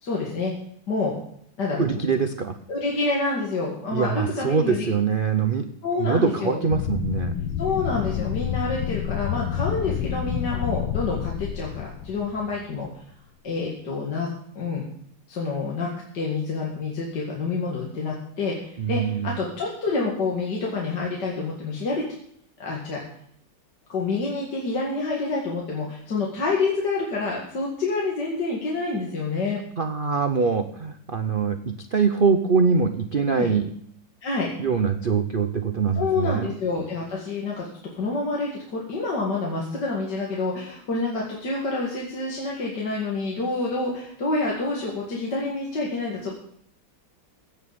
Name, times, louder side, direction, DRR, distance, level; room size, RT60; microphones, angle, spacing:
voice 1, 0.0-0.5 0.9-1.1 1.6-1.8 2.7-4.9 5.8-6.6 7.6-12.9 13.4-14.3 14.6-14.8 15.3-22.0 22.6-23.0 23.9-29.6 33.3-33.5 34.2-34.5 36.0-37.7 37.9-46.4, left 3 dB, 60° left, -3 dB, 2.7 m, -27 dB
voice 2, 1.8-2.6 3.9-5.7 6.0-7.3 18.8-19.4 29.8-33.7 34.6-36.6, right 5 dB, 75° right, 8 dB, 0.4 m, -23 dB
sound 1, 6.7-12.9, left 10 dB, 75° left, 1.5 m, -29 dB
16.0 x 6.9 x 7.0 m, 0.67 s
omnidirectional pair, 2.1 m